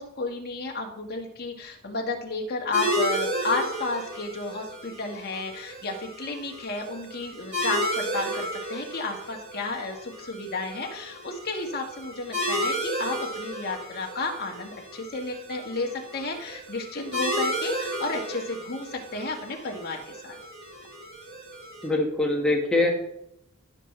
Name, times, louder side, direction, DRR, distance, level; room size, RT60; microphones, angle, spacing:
voice 1, 0.0-20.4, left 2 dB, 50° left, 1 dB, 1.6 m, -32 dB
sound 1, 2.7-21.9, equal, 50° right, 3.3 m, -33 dB
voice 2, 21.8-22.9, left 2 dB, 5° left, -1 dB, 1.7 m, -23 dB
16.5 x 6.0 x 3.2 m, 0.77 s
head